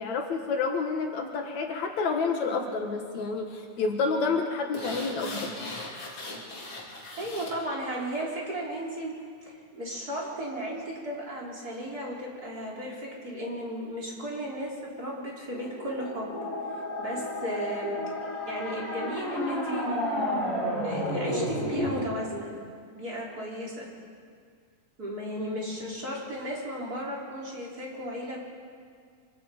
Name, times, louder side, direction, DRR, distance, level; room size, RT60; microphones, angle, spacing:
voice 1, 0.0-5.5, left 4 dB, 65° left, 3 dB, 2.7 m, -29 dB
sound 1, 4.7-7.6 8.0-8.1, left 2 dB, 40° left, 3.9 m, -39 dB
voice 2, 7.2-9.1 9.4-16.4 17.0-18.0 18.4-20.0 20.8-22.5 22.9-23.9 25.0-28.4, equal, 30° right, -3 dB, 4.5 m, -35 dB
sound 2, 15.5-22.0, left 1 dB, 25° left, 4.0 m, -31 dB
25.5 x 24.5 x 5.2 m, 2.1 s
omnidirectional pair, 3.5 m